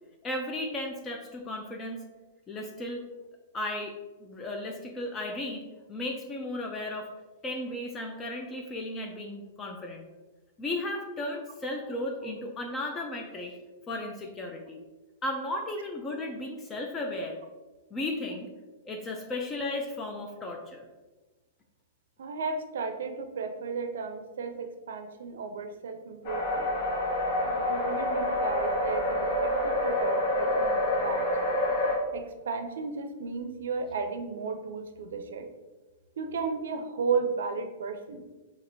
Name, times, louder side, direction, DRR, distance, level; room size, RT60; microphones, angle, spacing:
voice 1, 0.2-2.0 2.5-3.0 3.5-7.1 7.4-10.0 10.6-13.6 13.9-14.8 15.2-17.4 17.9-18.5 18.9-20.9, left 1 dB, 20° left, 2 dB, 0.4 m, -35 dB
voice 2, 22.2-26.7 27.5-31.2 32.1-35.5 36.2-38.2, right 5 dB, 80° right, 7 dB, 0.4 m, -34 dB
sound 1, 26.2-32.0, left 1 dB, 55° left, 1.0 m, -27 dB
4.2 x 2.9 x 2.6 m, 1.2 s
hypercardioid pair, 130°, 0 cm